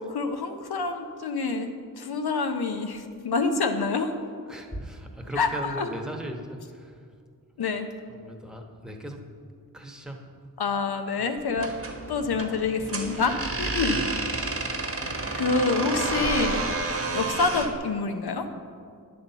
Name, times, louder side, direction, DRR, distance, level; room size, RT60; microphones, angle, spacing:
voice 1, 0.1-1.7 2.0-4.1 5.4-5.5 5.8-5.9 7.6-7.9 10.6-11.7 12.1-14.0 15.3-16.7 17.1-18.5, left 4 dB, 80° left, 6 dB, 0.8 m, -27 dB
voice 2, 4.5-7.0 8.1-9.2 9.7-10.3 11.2-11.3 13.6-14.1, equal, ahead, 2 dB, 1.0 m, -38 dB
sound 1, 11.6-17.8, right 3 dB, 35° right, 1.0 m, -30 dB
9.6 x 4.3 x 6.7 m, 2.2 s
wide cardioid pair, 60°, 37 cm